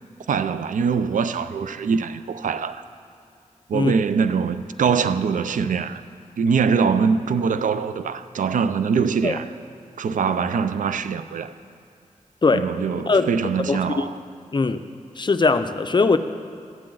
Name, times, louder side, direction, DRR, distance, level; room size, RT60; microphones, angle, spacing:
voice 1, 0.3-2.8 3.7-6.0 6.4-9.4 10.0-11.5 12.5-14.1, right 6 dB, 90° right, 0.4 m, -23 dB
voice 2, 13.7-14.1 14.5-14.8 15.2-16.2, left 3 dB, 35° left, 0.5 m, -20 dB
14.0 x 8.7 x 3.9 m
wide cardioid pair, 75°, 13 cm